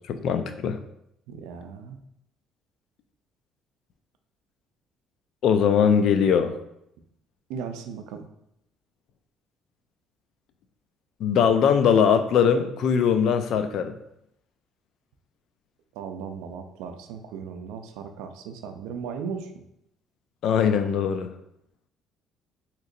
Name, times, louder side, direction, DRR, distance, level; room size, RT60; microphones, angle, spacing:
voice 1, 0.1-0.8 5.4-6.5 11.2-13.9 20.4-21.3, left 7 dB, 65° left, 8 dB, 0.3 m, -21 dB
voice 2, 1.3-2.0 7.5-8.3 15.9-19.5, right 6 dB, 85° right, 6 dB, 0.4 m, -36 dB
3.7 x 2.9 x 2.5 m, 0.78 s
cardioid pair, 90°, 0 cm